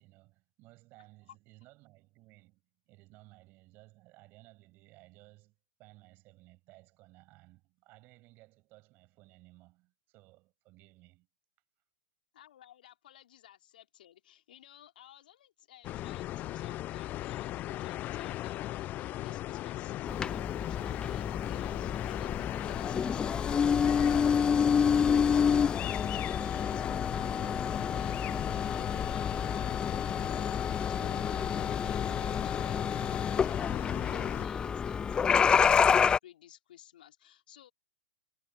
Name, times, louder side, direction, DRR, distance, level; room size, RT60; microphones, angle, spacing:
voice 1, 0.0-11.3, right 21 dB, 40° right, 7.0 m, -59 dB
voice 2, 12.3-37.7, left 12 dB, 65° left, 3.5 m, -56 dB
sound 1, 15.8-34.5, left 15 dB, 35° left, 0.9 m, -37 dB
sound 2, 20.1-36.2, left 6 dB, 15° left, 0.5 m, -29 dB
figure-of-eight pair, 105°, 5 cm